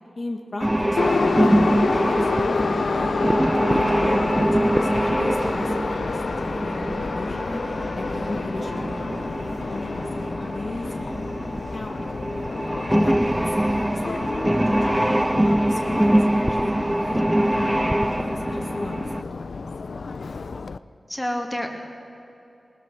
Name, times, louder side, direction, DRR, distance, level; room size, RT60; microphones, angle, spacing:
voice 1, 0.2-2.2 2.8-3.1 3.6-6.2 6.5-9.9 10.2-11.1 11.7-11.9 12.9-13.4 13.9-17.8 18.3-19.6, left 2 dB, 50° left, 1 dB, 1.8 m, -34 dB
sound 1, 0.6-19.2, right 1 dB, 10° right, 0.3 m, -24 dB
Subway metro underground, 1.0-20.8, left 4 dB, 80° left, 0.5 m, -29 dB
voice 2, 12.4-12.8 21.1-21.7, equal, 10° left, 1 dB, 2.4 m, -30 dB
20.0 x 19.5 x 6.8 m, 3.0 s
wide cardioid pair, 95°, 0 cm